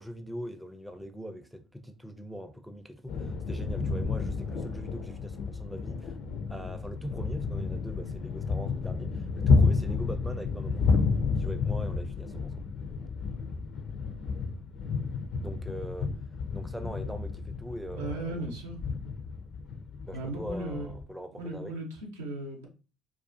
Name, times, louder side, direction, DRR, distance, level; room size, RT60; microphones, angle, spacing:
voice 1, 0.0-6.2 6.5-12.5 15.4-16.1 16.5-18.5 20.1-21.8, equal, 5° right, 0.4 m, -41 dB
sound 1, 3.1-21.0, left 4 dB, 60° left, 0.4 m, -30 dB
voice 2, 18.0-18.8 20.1-20.9 21.4-22.7, right 2 dB, 90° right, 0.6 m, -36 dB
2.3 x 2.3 x 2.5 m
hypercardioid pair, 60°, 0 cm